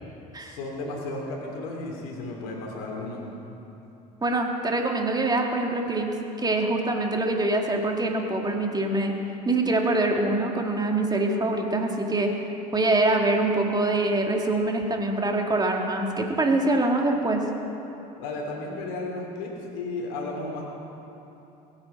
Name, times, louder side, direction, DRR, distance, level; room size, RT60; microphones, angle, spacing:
voice 1, 0.4-3.2 18.2-20.6, left 2 dB, 80° left, -1 dB, 2.9 m, -34 dB
voice 2, 4.2-6.1 6.4-9.1 9.5-12.3 12.7-17.4, right 2 dB, 20° right, 2 dB, 2.0 m, -24 dB
21.5 x 8.6 x 5.2 m, 3.0 s
hypercardioid pair, 75°, 19 cm